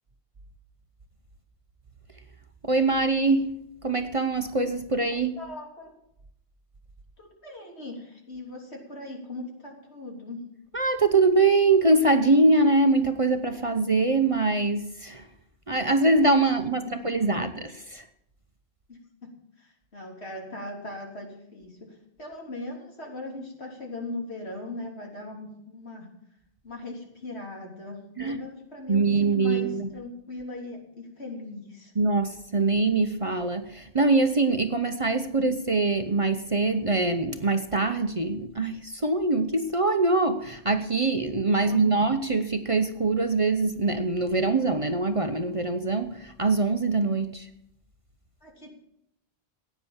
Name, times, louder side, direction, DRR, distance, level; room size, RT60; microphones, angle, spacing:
voice 1, 2.6-3.6 3.8-5.4 10.7-15.2 15.7-18.1 28.2-28.4 28.9-29.9 32.0-47.5, right 3 dB, 35° right, 8 dB, 0.8 m, -23 dB
voice 2, 5.4-5.9 7.2-10.4 16.5-17.5 18.9-19.3 19.6-26.1 26.6-31.9 41.6-42.0 48.4-48.7, left 2 dB, 75° left, 1 dB, 3.7 m, -39 dB
15.5 x 9.3 x 7.2 m, 0.77 s
omnidirectional pair, 1.1 m